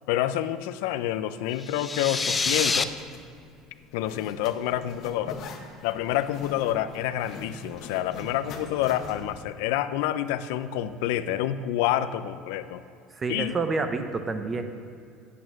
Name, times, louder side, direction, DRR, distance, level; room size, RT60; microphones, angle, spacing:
voice 1, 0.1-2.9 3.9-5.4 5.8-12.8 13.3-13.6, left 12 dB, 85° left, 12 dB, 0.5 m, -28 dB
sound 1, 1.6-2.8, left 4 dB, 15° left, 0.4 m, -26 dB
Zipper (clothing), 2.1-9.4, left 3 dB, 40° left, 1.2 m, -43 dB
voice 2, 13.2-14.6, right 4 dB, 20° right, 8 dB, 0.7 m, -28 dB
9.2 x 8.5 x 7.6 m, 2.5 s
cardioid pair, 165°, 0 cm